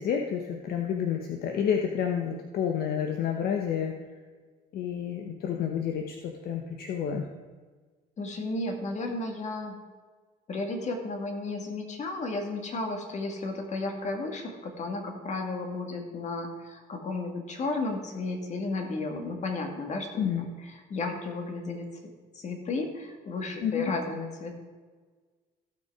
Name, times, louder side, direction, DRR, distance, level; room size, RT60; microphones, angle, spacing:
voice 1, 0.0-3.9 4.7-7.3 20.2-20.4 23.6-23.9, left 8 dB, 65° left, 3 dB, 1.0 m, -29 dB
voice 2, 8.2-9.8 10.5-21.9 22.4-24.6, left 2 dB, 45° left, 3 dB, 2.1 m, -33 dB
15.5 x 6.0 x 4.8 m, 1.4 s
cardioid pair, 110°, 17 cm